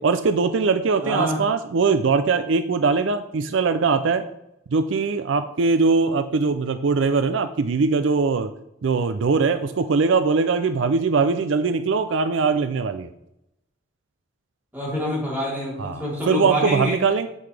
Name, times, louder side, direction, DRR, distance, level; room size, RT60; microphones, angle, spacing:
voice 1, 0.0-4.2 4.7-8.5 8.8-13.1 15.8-17.3, right 4 dB, 75° right, 10 dB, 0.5 m, -21 dB
voice 2, 1.0-1.4 14.7-17.0, equal, 10° right, -7 dB, 3.5 m, -26 dB
8.3 x 7.9 x 3.3 m, 0.84 s
head